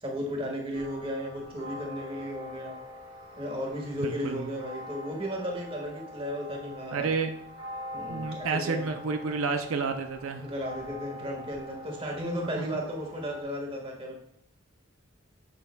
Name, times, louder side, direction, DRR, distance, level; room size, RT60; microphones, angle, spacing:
voice 1, 0.0-2.8 3.4-7.2 7.9-8.9 10.4-14.2, equal, 25° right, -1 dB, 1.6 m, -34 dB
sound 1, 0.7-13.4, left 1 dB, 65° right, 1.5 m, -44 dB
voice 2, 4.0-4.5 6.9-7.3 8.1-10.5 12.6-12.7, right 4 dB, 90° right, 6 dB, 0.5 m, -30 dB
7.7 x 6.7 x 2.2 m, 0.72 s
head